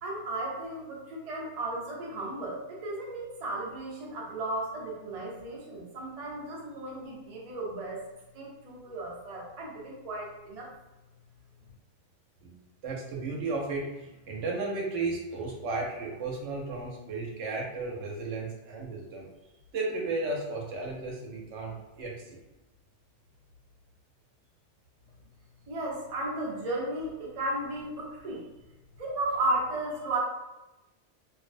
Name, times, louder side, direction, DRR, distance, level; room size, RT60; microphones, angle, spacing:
voice 1, 0.0-8.0 8.3-10.7 25.7-28.5 29.0-30.2, right 2 dB, 45° right, -4 dB, 0.5 m, -34 dB
voice 2, 12.4-19.3 19.7-22.4, right 3 dB, 80° right, -2 dB, 0.9 m, -34 dB
2.5 x 2.0 x 2.5 m, 1.0 s
omnidirectional pair, 1.2 m